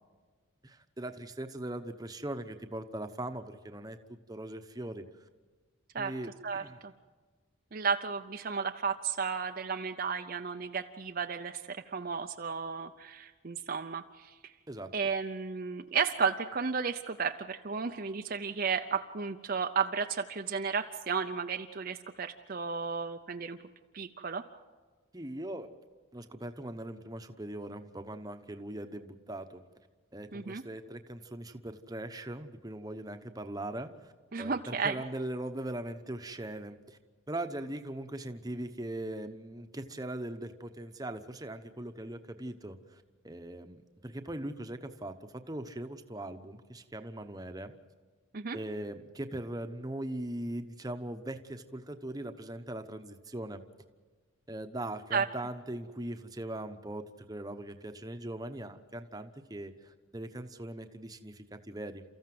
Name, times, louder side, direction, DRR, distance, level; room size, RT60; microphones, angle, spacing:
voice 1, 0.6-5.0 6.0-6.8 14.7-14.9 25.1-25.7 26.1-29.6 30.1-37.0 37.3-47.7 48.5-53.6 54.5-62.0, right 1 dB, 20° right, 7 dB, 1.0 m, -40 dB
voice 2, 7.7-14.3 14.9-23.6 23.9-24.5 30.3-30.6 34.3-34.9 48.3-48.6 55.1-55.3, right 5 dB, 45° right, 6 dB, 0.6 m, -33 dB
30.0 x 14.5 x 7.8 m, 1.4 s
head